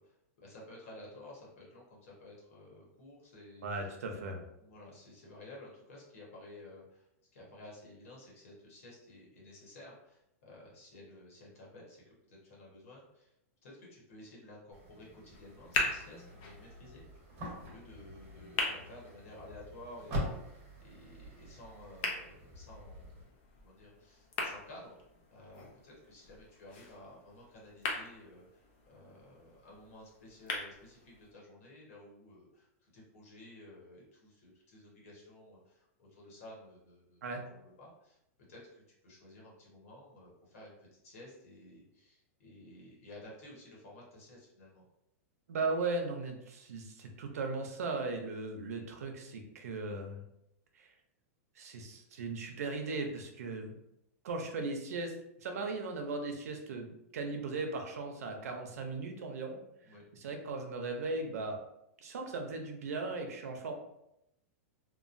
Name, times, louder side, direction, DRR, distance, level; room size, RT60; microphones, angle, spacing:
voice 1, 0.0-3.6 4.6-13.3 13.6-17.0 17.6-23.3 23.6-25.0 25.3-38.2 38.5-44.8 59.8-60.0, left 1 dB, 65° left, -4 dB, 1.2 m, -53 dB
voice 2, 3.6-4.4 37.2-37.4 45.5-50.2 50.7-50.9 51.6-53.8 54.2-55.1 55.4-59.6 60.1-61.6 62.0-63.7, right 3 dB, 90° right, 3 dB, 0.6 m, -37 dB
sound 1, 14.7-23.2, equal, 30° right, 0.9 m, -44 dB
sound 2, 15.3-31.3, left 3 dB, 45° left, 0.6 m, -42 dB
3.0 x 2.1 x 2.5 m, 0.82 s
supercardioid pair, 160°, 8 cm